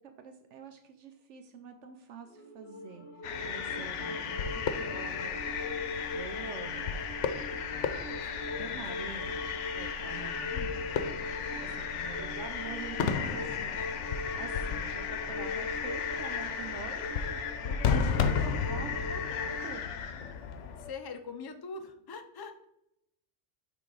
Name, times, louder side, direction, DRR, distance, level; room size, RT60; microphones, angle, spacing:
voice 1, 0.0-4.1 4.4-5.4 6.1-7.0 7.8-8.2 8.5-9.5 9.8-11.3 11.6-13.7 14.0-18.2 18.4-19.9, right 6 dB, 80° right, 7 dB, 0.9 m, -47 dB
sound 1, 2.3-19.8, left 2 dB, 60° left, 1.0 m, -41 dB
sound 2, 3.2-20.9, left 7 dB, 85° left, 0.9 m, -34 dB
voice 2, 3.8-4.4 7.7-8.2 8.5-8.8 10.1-10.5 11.9-12.4 20.8-22.7, left 3 dB, 40° left, 6 dB, 0.3 m, -45 dB
sound 3, 5.2-17.8, left 1 dB, 50° right, 1.9 m, -52 dB
5.9 x 3.9 x 4.8 m, 0.79 s
omnidirectional pair, 1.2 m